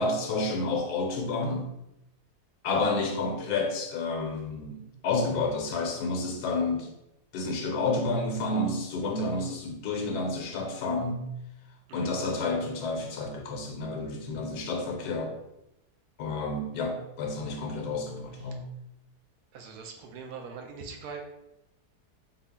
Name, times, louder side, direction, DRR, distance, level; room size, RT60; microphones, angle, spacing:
voice 1, 0.0-1.7 2.6-6.9 7.3-11.3 11.9-15.3 16.2-18.7, left 3 dB, 80° left, 2 dB, 1.2 m, -30 dB
voice 2, 19.5-21.3, right 5 dB, 75° right, 3 dB, 1.1 m, -42 dB
4.1 x 2.0 x 3.5 m, 0.86 s
omnidirectional pair, 1.7 m